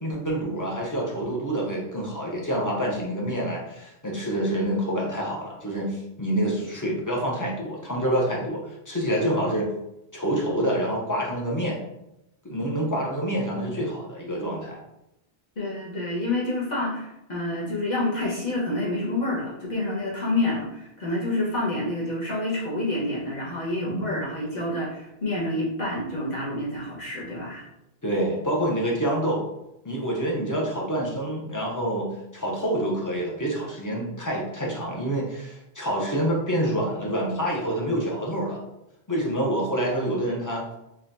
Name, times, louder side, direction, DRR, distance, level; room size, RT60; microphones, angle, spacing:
voice 1, 0.0-9.7 10.1-11.8 12.4-14.8 23.8-24.2 28.0-29.4 29.8-38.6 39.1-40.6, right 1 dB, 20° left, -2 dB, 0.7 m, -27 dB
voice 2, 15.6-27.6, left 1 dB, 45° left, -6 dB, 1.2 m, -28 dB
4.1 x 3.0 x 2.6 m, 0.87 s
omnidirectional pair, 1.1 m